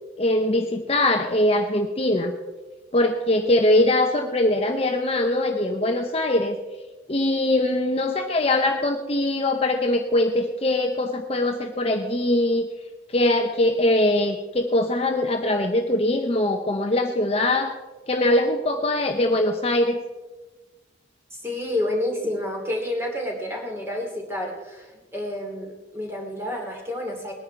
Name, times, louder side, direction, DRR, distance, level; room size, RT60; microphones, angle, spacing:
voice 1, 0.2-2.3 2.9-6.6 7.1-12.7 13.1-17.7 18.1-20.0, left 1 dB, 30° left, 4 dB, 0.8 m, -22 dB
voice 2, 21.3-27.3, left 1 dB, 10° right, 0 dB, 2.7 m, -29 dB
20.0 x 9.8 x 4.5 m, 1.2 s
head